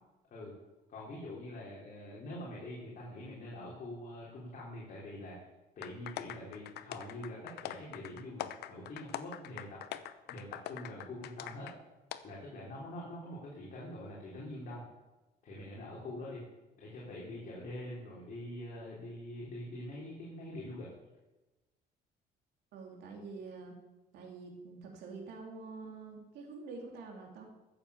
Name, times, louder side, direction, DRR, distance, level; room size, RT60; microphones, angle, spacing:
voice 1, 0.9-5.4 5.8-9.8 10.3-11.7 12.2-14.8 15.4-16.4 16.8-20.9, left 1 dB, 50° left, -5 dB, 4.0 m, -44 dB
sound 1, 5.8-11.8 12.1-12.2, left 12 dB, 75° left, 0.8 m, -43 dB
voice 2, 22.7-23.7 24.1-27.5, right 4 dB, 80° right, 1 dB, 3.0 m, -46 dB
14.0 x 7.3 x 7.1 m, 1.1 s
cardioid pair, 110°, 17 cm